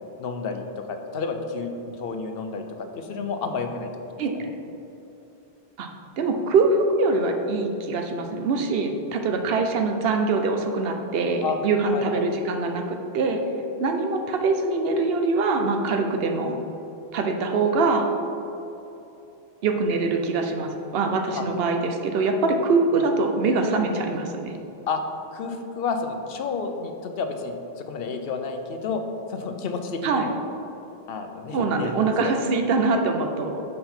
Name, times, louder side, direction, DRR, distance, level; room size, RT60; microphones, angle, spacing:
voice 1, 0.2-2.7 2.9-3.9 4.3-4.5 11.4-11.6 11.9-12.2 21.3-21.5 23.8-23.9 24.9-25.0 25.3-29.0 29.3-30.4 31.1-32.3, left 4 dB, 70° left, 5 dB, 0.8 m, -30 dB
voice 2, 6.2-13.4 13.8-16.6 17.1-18.1 19.6-24.5 30.0-30.3 31.5-33.6, right 3 dB, 70° right, 4 dB, 0.8 m, -23 dB
5.7 x 5.2 x 4.3 m, 2.9 s
omnidirectional pair, 1.1 m